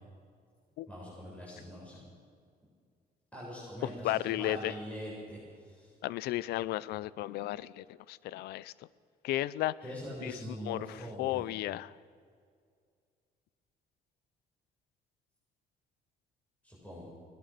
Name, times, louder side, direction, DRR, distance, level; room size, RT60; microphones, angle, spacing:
voice 1, 0.9-2.0 3.3-5.4 5.7-5.9 9.8-11.4 16.6-17.1, equal, 10° left, -7 dB, 7.8 m, -43 dB
voice 2, 3.8-4.7 6.0-8.7 9.2-9.7 10.2-11.9, left 15 dB, 85° left, 20 dB, 0.6 m, -34 dB
20.5 x 19.0 x 6.7 m, 2.1 s
cardioid pair, 120°, 16 cm